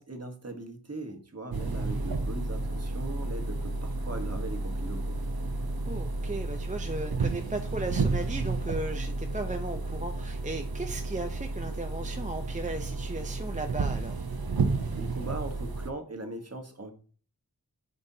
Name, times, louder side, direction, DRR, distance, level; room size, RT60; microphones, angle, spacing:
voice 1, 0.0-5.2 14.7-16.9, right 2 dB, 40° right, 5 dB, 1.2 m, -40 dB
sound 1, 1.5-15.9, right 3 dB, 70° right, 0.8 m, -32 dB
voice 2, 5.9-14.2, right 2 dB, 20° right, 5 dB, 0.6 m, -36 dB
9.3 x 5.3 x 2.7 m, 0.43 s
wide cardioid pair, 50°, 38 cm